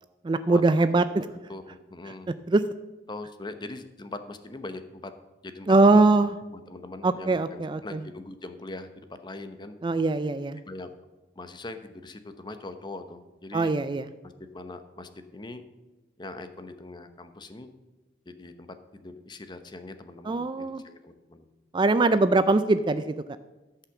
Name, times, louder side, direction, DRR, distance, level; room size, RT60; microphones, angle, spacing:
voice 1, 0.2-1.3 2.5-2.6 5.7-6.3 7.0-8.0 9.8-10.6 13.5-14.1 20.3-20.8 21.7-23.2, right 3 dB, 25° right, 12 dB, 0.3 m, -22 dB
voice 2, 1.5-2.3 3.1-5.1 5.4-6.0 6.5-9.7 10.7-10.9 11.4-13.8 14.2-15.6 16.2-17.7 18.3-21.5 22.1-22.2, left 2 dB, 25° left, 9 dB, 0.8 m, -41 dB
13.5 x 5.7 x 7.2 m, 1.1 s
head